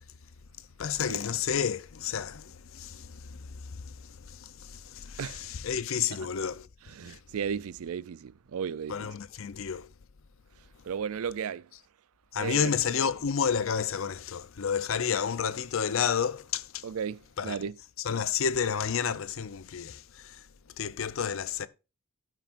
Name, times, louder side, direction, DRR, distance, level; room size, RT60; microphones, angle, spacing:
voice 1, 0.8-6.7 7.0-7.2 8.9-9.9 12.3-16.9 17.4-17.6 18.0-20.4 20.8-21.7, left 7 dB, 60° left, 0.5 m, -31 dB
voice 2, 7.0-9.1 10.9-11.6 12.4-12.6 16.8-17.8, right 7 dB, 75° right, 0.4 m, -34 dB
14.0 x 6.0 x 2.5 m
head